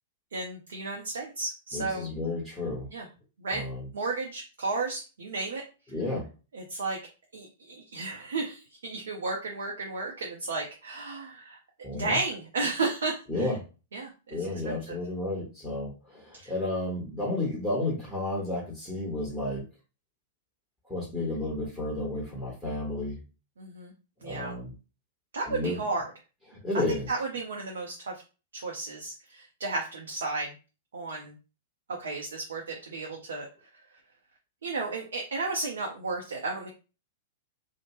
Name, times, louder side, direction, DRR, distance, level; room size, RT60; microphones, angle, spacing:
voice 1, 0.3-2.1 2.9-3.1 3.4-3.6 3.9-5.6 6.5-7.0 7.3-11.6 11.9-13.5 13.9-14.4 14.7-15.0 16.4-16.5 23.6-23.9 24.2-24.5 25.3-26.0 27.1-28.2 28.5-30.5 30.9-31.4 32.0-33.5 34.6-36.7, right 3 dB, 65° right, 0 dB, 0.6 m, -33 dB
voice 2, 1.7-2.9 3.5-3.9 5.9-6.3 11.8-12.2 13.3-13.6 14.3-19.7 20.9-23.2 24.2-24.7 25.5-25.8 26.5-27.1, left 2 dB, ahead, -6 dB, 1.3 m, -32 dB
2.8 x 2.0 x 3.1 m, 0.33 s
figure-of-eight pair, 100°, 0 cm